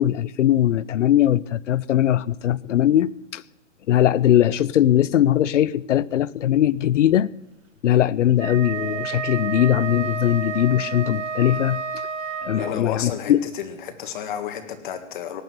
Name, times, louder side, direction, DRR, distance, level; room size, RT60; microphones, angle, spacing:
voice 1, 0.0-3.4 3.9-7.3 7.8-11.8 12.4-13.5, left 11 dB, 75° left, 0.7 m, -20 dB
Wind instrument woodwind instrument, 8.3-12.9, right 6 dB, 90° right, 5.0 m, -30 dB
voice 2, 12.5-15.4, left 9 dB, 40° left, 1.8 m, -32 dB
18.0 x 6.7 x 9.3 m
hypercardioid pair, 165°, 37 cm